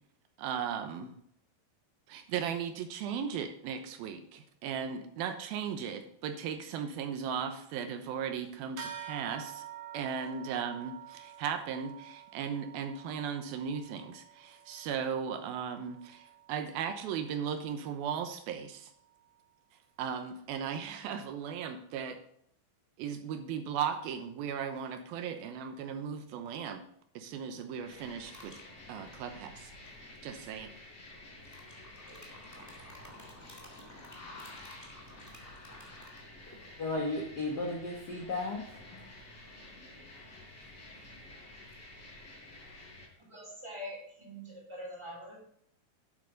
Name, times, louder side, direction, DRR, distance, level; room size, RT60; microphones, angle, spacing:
voice 1, 0.4-1.2 2.1-9.6 9.9-18.9 20.0-22.2 23.0-26.8 27.2-28.6 28.9-29.7 30.2-30.7, right 7 dB, 80° right, 7 dB, 2.7 m, -37 dB
sound 1, 8.8-18.6, right 9 dB, 60° right, 2.5 m, -49 dB
sound 2, 27.8-43.1, left 2 dB, 45° left, 4.8 m, -51 dB
sound 3, 28.2-28.7 29.8-30.6 31.4-36.7, left 1 dB, 10° left, 1.0 m, -53 dB
voice 2, 36.8-38.8, left 2 dB, 80° left, -1 dB, 0.9 m, -34 dB
voice 3, 43.2-45.4, equal, 5° right, -5 dB, 3.4 m, -44 dB
11.0 x 8.2 x 3.9 m, 0.67 s
omnidirectional pair, 4.3 m